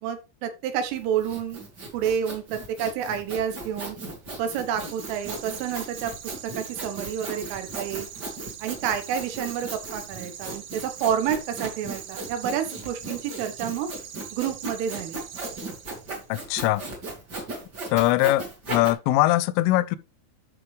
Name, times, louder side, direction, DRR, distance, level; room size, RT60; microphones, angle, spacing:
voice 1, 0.0-1.6 1.9-4.0 4.4-8.1 8.6-13.9 14.3-15.2, right 8 dB, 90° right, 3.9 m, -29 dB
Sawing, 0.9-18.9, right 2 dB, 40° right, 1.6 m, -37 dB
sound 1, 4.5-16.3, right 9 dB, 65° right, 1.8 m, -43 dB
voice 2, 16.3-16.8 17.9-20.0, left 16 dB, 85° left, 3.1 m, -22 dB
13.0 x 5.1 x 3.4 m
omnidirectional pair, 5.6 m